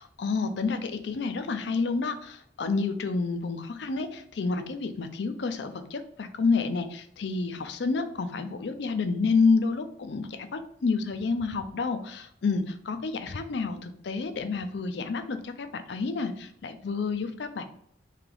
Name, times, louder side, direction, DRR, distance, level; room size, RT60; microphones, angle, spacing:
voice 1, 0.0-17.6, left 4 dB, 65° left, 9 dB, 0.4 m, -29 dB
3.2 x 2.9 x 3.7 m, 0.68 s
head